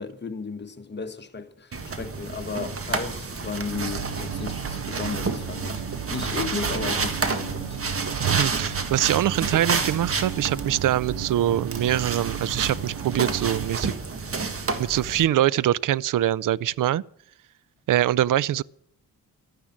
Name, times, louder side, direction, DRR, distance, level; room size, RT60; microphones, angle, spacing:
voice 1, 0.0-5.8 6.1-7.8, left 4 dB, 30° left, 1.4 m, -34 dB
sound 1, 1.7-15.3, right 4 dB, 40° right, 1.7 m, -30 dB
sound 2, 3.7-13.7, right 9 dB, 80° right, 1.7 m, -34 dB
voice 2, 8.2-13.9 14.8-17.0 17.9-18.6, right 12 dB, 60° right, 0.5 m, -23 dB
12.0 x 10.0 x 7.3 m
cardioid pair, 105°, 36 cm